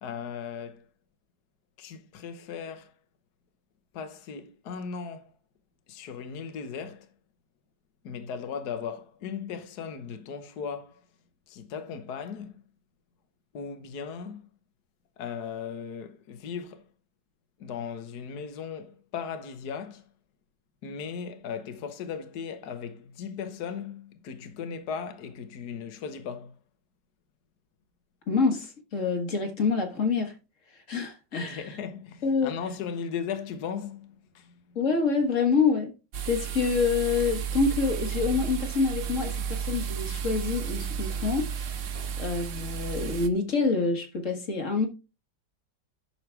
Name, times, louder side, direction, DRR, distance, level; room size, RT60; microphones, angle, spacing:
voice 1, 0.0-0.8 1.8-2.9 3.9-5.2 5.9-7.1 8.0-11.0 11.5-12.6 13.5-14.5 15.2-16.8 17.6-20.0 20.8-26.5 31.3-34.5 41.9-42.2, left 6 dB, 65° left, 1.6 m, -37 dB
voice 2, 28.3-30.3 30.9-31.7 32.2-32.5 34.7-35.9 36.3-41.7 42.2-44.9, left 4 dB, 45° left, 1.7 m, -26 dB
sound 1, 36.1-43.3, right 8 dB, 55° right, 1.0 m, -33 dB
10.5 x 6.5 x 3.3 m
omnidirectional pair, 1.9 m